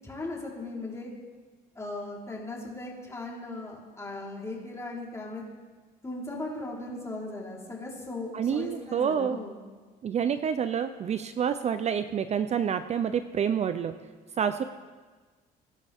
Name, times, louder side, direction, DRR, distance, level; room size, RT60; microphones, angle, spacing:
voice 1, 0.0-1.1 1.8-5.4 6.0-9.6, left 2 dB, 15° left, -4 dB, 4.1 m, -38 dB
voice 2, 8.3-9.4 10.0-14.0 14.4-14.6, right 8 dB, 40° right, 10 dB, 0.6 m, -28 dB
23.0 x 11.5 x 3.6 m, 1.4 s
cardioid pair, 110°, 17 cm